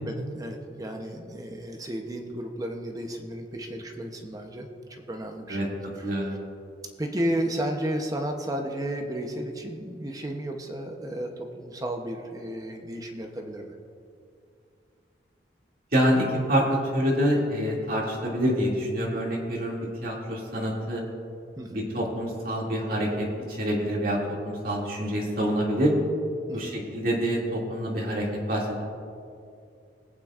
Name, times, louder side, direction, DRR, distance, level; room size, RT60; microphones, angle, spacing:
voice 1, 0.1-5.7 6.0-6.4 7.0-13.7 21.6-21.9 26.5-26.8, right 1 dB, 20° right, 3 dB, 0.7 m, -33 dB
voice 2, 6.0-6.3 15.9-21.0 21.7-25.9 26.5-28.8, equal, 50° right, -4 dB, 2.3 m, -26 dB
21.0 x 8.8 x 2.4 m, 2.5 s
head